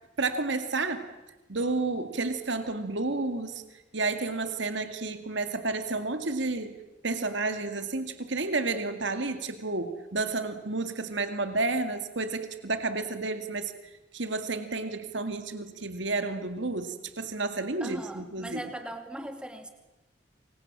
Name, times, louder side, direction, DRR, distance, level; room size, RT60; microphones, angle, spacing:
voice 1, 0.2-1.0 1.5-3.6 3.9-6.8 7.0-13.7 14.1-18.6, right 3 dB, 75° right, 8 dB, 2.2 m, -31 dB
voice 2, 17.8-19.7, right 1 dB, 5° right, 6 dB, 2.5 m, -39 dB
28.0 x 24.5 x 7.4 m, 1.1 s
head